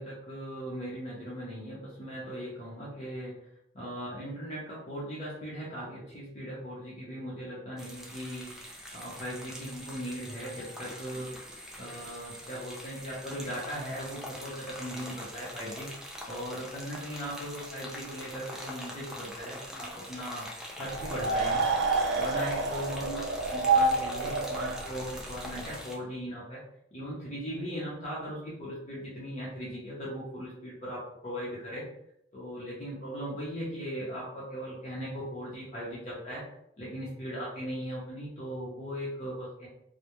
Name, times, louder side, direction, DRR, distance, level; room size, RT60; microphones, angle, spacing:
voice 1, 0.0-3.4 3.7-8.5 8.9-11.3 11.8-15.9 16.3-21.6 22.2-26.6 26.9-31.9 32.3-36.5 36.8-39.7, equal, 40° left, -6 dB, 0.6 m, -38 dB
sound 1, 7.8-26.0, equal, 5° right, 0.3 m, -44 dB
sound 2, 20.8-25.7, right 3 dB, 75° right, 0.4 m, -28 dB
2.2 x 2.0 x 2.9 m, 0.74 s
head